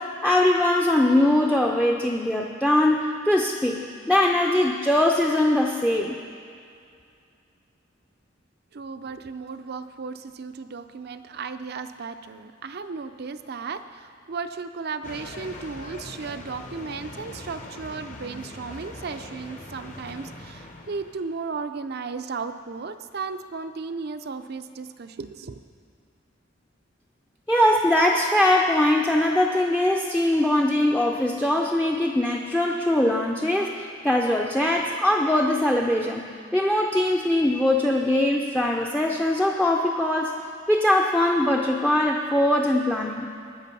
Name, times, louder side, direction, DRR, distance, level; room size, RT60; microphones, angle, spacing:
voice 1, 0.0-6.2 27.5-40.4 40.7-43.3, left 1 dB, 5° left, 1 dB, 0.5 m, -22 dB
voice 2, 8.7-25.6, right 4 dB, 55° right, 9 dB, 0.5 m, -35 dB
sound 1, 15.0-21.2, left 1 dB, 40° left, 0.9 m, -41 dB
18.5 x 6.6 x 5.4 m, 2.3 s
head